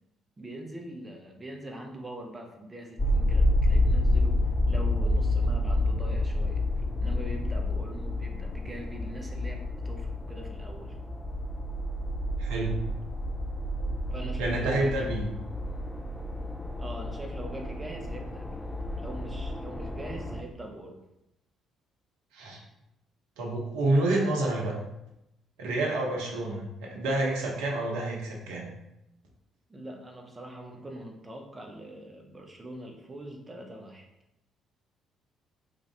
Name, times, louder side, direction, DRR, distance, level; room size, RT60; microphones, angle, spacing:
voice 1, 0.4-10.9 14.1-15.1 16.8-18.6 19.0-21.0 29.7-34.0, right 1 dB, 25° right, 2 dB, 0.8 m, -42 dB
sound 1, 3.0-20.4, left 1 dB, 15° left, 0.5 m, -29 dB
voice 2, 12.4-12.8 14.4-15.2 22.3-22.6 23.4-24.7 25.6-28.7, right 2 dB, 75° right, -1 dB, 0.8 m, -28 dB
3.8 x 2.6 x 3.3 m, 0.87 s
hypercardioid pair, 50°, 0 cm